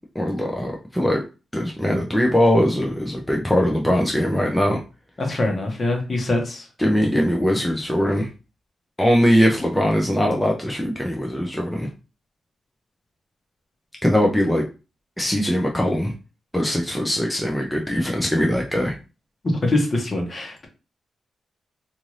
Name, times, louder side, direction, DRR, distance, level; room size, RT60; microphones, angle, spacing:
voice 1, 0.2-1.2 1.5-4.8 6.8-8.3 9.0-11.9 14.0-14.6 15.2-16.1 16.5-19.0, equal, 5° left, 0 dB, 0.5 m, -21 dB
voice 2, 5.2-6.6 19.6-20.7, left 2 dB, 40° left, 2 dB, 1.0 m, -23 dB
2.5 x 2.5 x 3.1 m, 0.31 s
cardioid pair, 100°, 0 cm